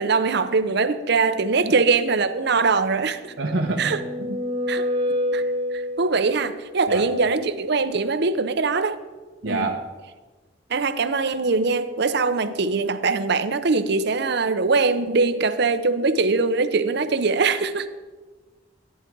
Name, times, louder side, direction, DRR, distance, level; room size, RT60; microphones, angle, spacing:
voice 1, 0.0-3.2 3.8-4.0 4.7-4.9 5.3-5.4 5.7-9.0 9.5-9.8 10.7-17.9, right 4 dB, 65° right, 11 dB, 0.8 m, -22 dB
sound 1, 3.3-6.4, left 1 dB, 30° right, 1.2 m, -27 dB
voice 2, 3.4-3.9 4.3-4.4 6.9-7.0 9.4-9.8, right 2 dB, 85° right, 0 dB, 1.2 m, -26 dB
13.0 x 10.5 x 4.7 m, 1.3 s
head